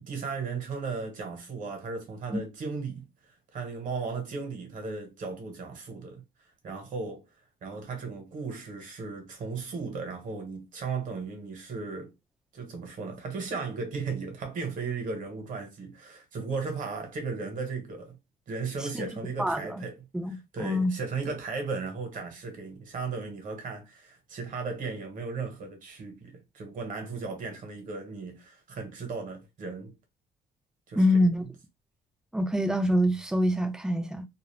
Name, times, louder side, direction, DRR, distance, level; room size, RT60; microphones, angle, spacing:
voice 1, 0.0-3.0 3.5-6.2 6.6-7.2 7.6-12.1 12.5-18.2 18.5-20.0 20.3-29.9 30.9-31.0, right 4 dB, 50° right, 1.1 m, -36 dB
voice 2, 19.4-19.8 20.1-20.9 31.0-31.4 32.3-34.2, left 1 dB, 5° right, 0.5 m, -25 dB
2.5 x 2.0 x 3.2 m
cardioid pair, 110°, 17 cm